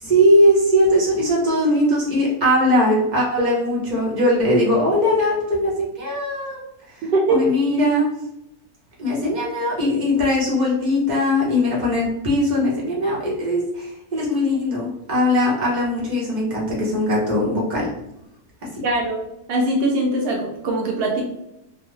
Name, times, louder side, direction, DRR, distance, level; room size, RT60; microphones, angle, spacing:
voice 1, 0.0-6.6 7.3-8.1 9.0-17.9, left 1 dB, 35° right, -4 dB, 0.9 m, -20 dB
voice 2, 18.8-19.2 19.5-21.2, right 2 dB, 85° right, 0 dB, 0.5 m, -21 dB
3.3 x 2.1 x 3.0 m, 0.87 s
omnidirectional pair, 1.7 m